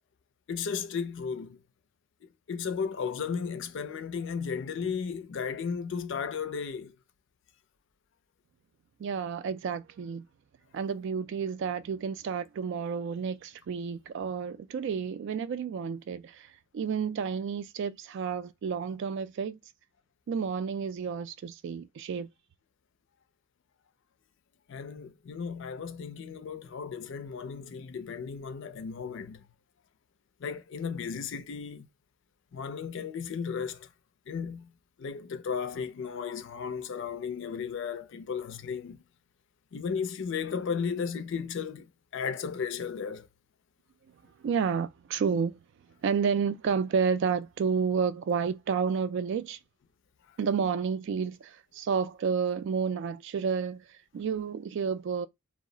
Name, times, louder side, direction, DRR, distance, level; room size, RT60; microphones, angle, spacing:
voice 1, 0.5-1.6 2.2-6.9 24.7-29.5 30.4-31.9 32.5-33.9 34.3-34.7 35.0-39.0 39.7-43.3, left 6 dB, 60° left, 0.4 m, -35 dB
voice 2, 9.0-10.3 10.7-19.6 20.3-22.3 44.4-45.6 46.0-49.6 50.4-55.3, right 6 dB, 60° right, 0.3 m, -30 dB
2.2 x 2.0 x 3.7 m
head